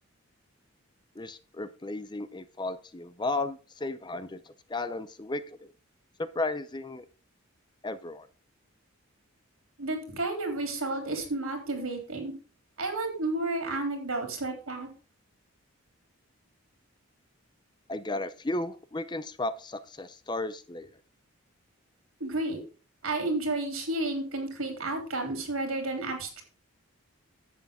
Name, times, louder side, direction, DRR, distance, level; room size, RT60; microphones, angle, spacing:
voice 1, 1.2-5.6 6.2-7.1 7.8-8.3 17.9-20.9, left 2 dB, 20° left, 13 dB, 0.5 m, -34 dB
voice 2, 9.8-12.3 12.8-14.9 22.2-22.6 23.0-26.4, right 2 dB, 75° right, 4 dB, 3.4 m, -31 dB
11.0 x 8.4 x 3.7 m, 0.36 s
head